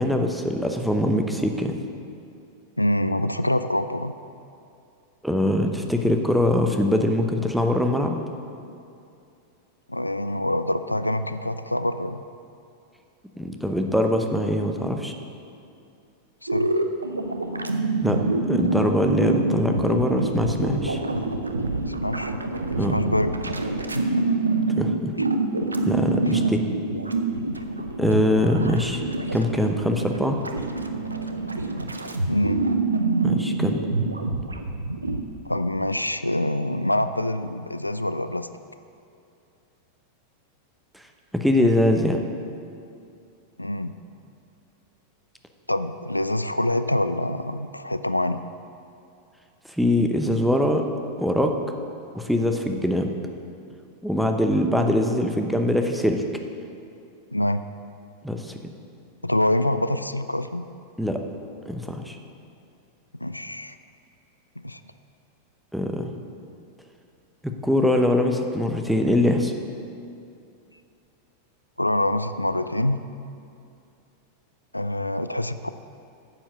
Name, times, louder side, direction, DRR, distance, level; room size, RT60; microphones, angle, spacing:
voice 1, 0.0-1.7 5.2-8.2 13.4-15.1 18.0-18.2 18.5-21.0 22.8-23.0 24.8-25.1 25.8-26.6 28.0-29.0 29.3-30.4 33.2-33.8 40.9-41.0 41.3-42.2 49.8-50.8 51.2-51.5 52.1-53.1 54.0-56.2 58.2-58.5 61.0-61.2 61.7-62.2 65.7-66.1 67.4-69.5, left 1 dB, ahead, 4 dB, 0.8 m, -23 dB
voice 2, 2.8-4.1 9.9-12.2 16.4-16.7 21.9-22.3 22.9-23.4 23.9-24.2 25.2-25.3 26.2-26.3 32.3-32.6 35.5-38.5 43.6-43.9 45.7-48.4 57.3-57.6 59.2-60.7 63.2-63.8 64.6-64.8 71.8-73.0 74.7-75.7, left 1 dB, 85° left, 11 dB, 0.3 m, -25 dB
sound 1, 16.5-35.2, right 3 dB, 80° right, 0.6 m, -26 dB
9.6 x 7.3 x 6.6 m, 2.6 s
figure-of-eight pair, 90°, 0 cm